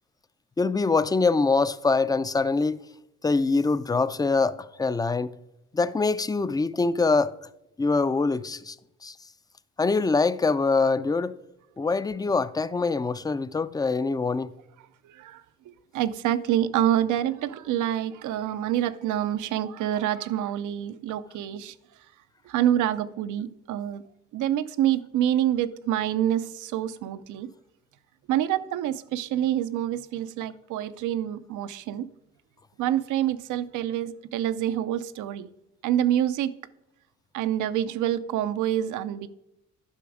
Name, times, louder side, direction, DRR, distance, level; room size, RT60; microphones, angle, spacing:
voice 1, 0.6-2.8 3.2-5.3 5.7-7.4 7.8-8.8 9.0-9.2 9.8-11.4 11.8-14.5, left 4 dB, 15° left, 0.4 m, -24 dB
voice 2, 15.0-21.7 22.5-24.0 24.3-27.5 28.3-32.1 32.8-35.5 35.8-36.5 37.3-39.3, right 11 dB, 80° right, 0.6 m, -27 dB
11.5 x 6.1 x 4.9 m
cardioid pair, 90°, 30 cm